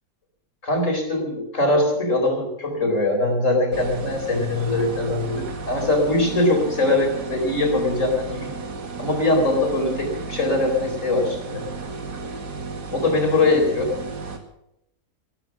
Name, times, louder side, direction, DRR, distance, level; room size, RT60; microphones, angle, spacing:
voice 1, 0.6-8.6 9.0-11.6 12.9-13.9, left 2 dB, 50° left, 2 dB, 4.8 m, -22 dB
sound 1, 3.7-14.4, right 4 dB, 85° right, 2.6 m, -33 dB
15.5 x 14.0 x 6.1 m, 0.79 s
omnidirectional pair, 1.7 m